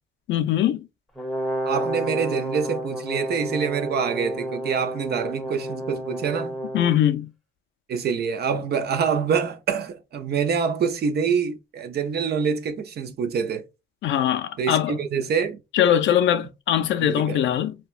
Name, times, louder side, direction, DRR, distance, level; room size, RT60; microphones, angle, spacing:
voice 1, 0.3-0.8 6.7-7.3 14.0-15.0 15.7-17.8, left 10 dB, 70° left, 0.4 m, -21 dB
Brass instrument, 1.2-7.0, right 1 dB, ahead, 0.8 m, -30 dB
voice 2, 1.6-6.6 7.9-13.6 14.6-15.6 17.0-17.4, right 6 dB, 55° right, 0.6 m, -26 dB
2.8 x 2.2 x 2.4 m
cardioid pair, 90°, 20 cm